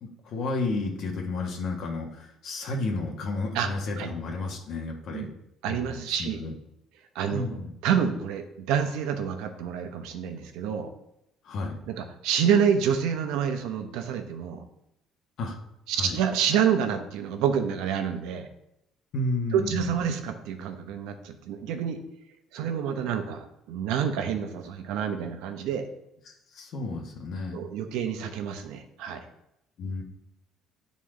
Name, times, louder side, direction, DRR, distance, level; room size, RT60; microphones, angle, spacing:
voice 1, 0.0-5.3 5.7-6.5 7.3-7.7 11.4-11.8 15.4-15.6 16.0-16.2 19.1-20.0 26.3-27.7 29.8-30.0, left 2 dB, 55° left, 1 dB, 1.2 m, -32 dB
voice 2, 5.6-6.4 7.1-7.5 7.8-10.9 11.9-14.6 15.9-18.5 19.5-22.0 22.5-25.9 27.5-29.2, right 8 dB, 85° right, 7 dB, 0.9 m, -28 dB
9.3 x 4.2 x 3.7 m, 0.82 s
cardioid pair, 140°, 0 cm